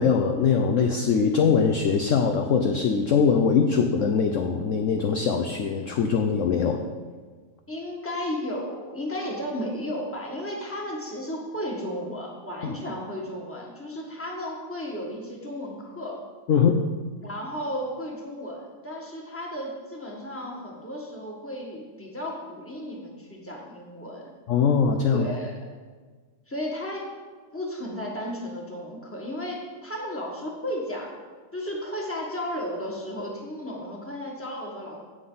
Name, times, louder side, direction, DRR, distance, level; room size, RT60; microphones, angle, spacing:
voice 1, 0.0-6.8 12.6-12.7 16.5-16.8 24.5-25.3, left 6 dB, 60° left, 5 dB, 0.9 m, -22 dB
voice 2, 7.7-16.2 17.2-24.3 25.1-25.5 26.5-27.0 27.5-31.1 31.5-35.0, equal, 10° left, -2 dB, 1.6 m, -34 dB
16.0 x 5.9 x 4.0 m, 1.5 s
omnidirectional pair, 1.7 m